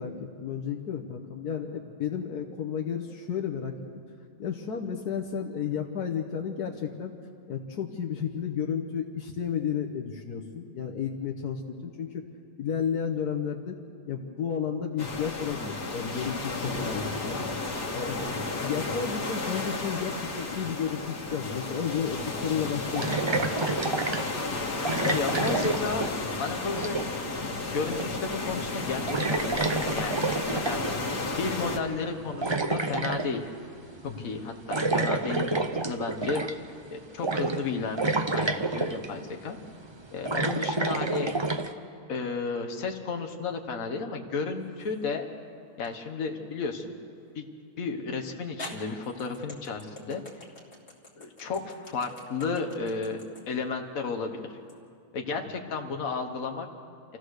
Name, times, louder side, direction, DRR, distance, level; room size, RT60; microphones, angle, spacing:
voice 1, 0.0-3.8 4.4-7.1 7.5-12.2 12.6-13.8 14.1-17.4 17.9-18.3 18.6-23.7 34.0-34.4, left 7 dB, 75° left, 1 dB, 1.6 m, -32 dB
sound 1, 15.0-31.8, left 3 dB, 90° left, 2.2 m, -33 dB
sound 2, 22.0-22.1 22.9-24.3 24.8-26.4 26.6-27.2 27.9-28.3 28.6-28.7 29.1-31.0 32.0-33.3 34.7-36.7 37.2-37.7 38.0-39.1 39.8-41.7, right 3 dB, 35° right, 0.4 m, -29 dB
voice 2, 25.0-27.0 27.7-29.7 29.9-30.3 30.5-30.8 31.3-33.4 34.0-35.6 35.9-36.4 36.9-39.6 40.1-41.3 42.1-45.3 45.8-46.9 47.4-47.5 47.8-50.2 51.2-53.2 53.5-54.6 55.1-56.7, left 4 dB, 60° left, 4 dB, 1.7 m, -33 dB
sound 3, 44.5-45.1 45.8-46.0 47.8-47.9 48.6-54.8, left 1 dB, 45° left, 2.8 m, -46 dB
28.0 x 15.0 x 6.5 m, 2.4 s
omnidirectional pair, 1.7 m